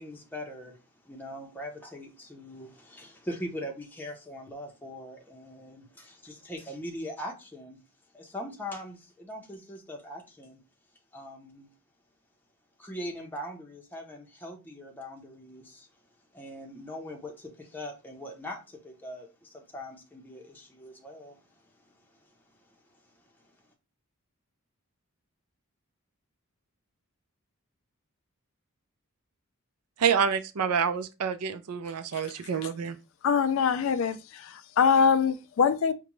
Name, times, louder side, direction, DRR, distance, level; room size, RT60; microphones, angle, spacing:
voice 1, 0.0-7.8 8.1-10.6 11.1-11.7 12.8-15.9 16.3-23.6, equal, 10° left, 0.6 m, -42 dB
voice 2, 30.0-33.0, right 7 dB, 85° right, 0.5 m, -27 dB
voice 3, 33.2-34.2 34.4-35.9, left 6 dB, 60° left, 0.3 m, -23 dB
4.9 x 2.2 x 3.0 m
head